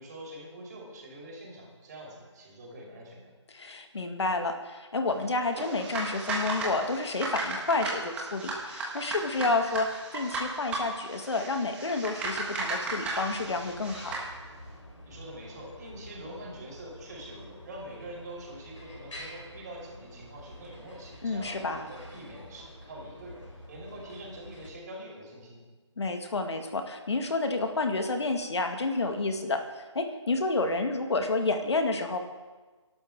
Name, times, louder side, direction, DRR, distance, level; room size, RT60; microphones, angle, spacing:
voice 1, 0.0-3.3 15.0-23.4 23.7-25.6, right 1 dB, 35° right, -3 dB, 5.5 m, -44 dB
voice 2, 3.5-14.3 21.2-21.9 26.0-29.6 29.9-32.2, left 3 dB, 65° left, 5 dB, 2.0 m, -30 dB
sound 1, 5.5-14.3, right 3 dB, 5° right, 1.4 m, -35 dB
sound 2, 13.3-24.7, left 1 dB, 90° left, 4.2 m, -48 dB
22.5 x 12.0 x 3.7 m, 1.3 s
figure-of-eight pair, 165°, 15 cm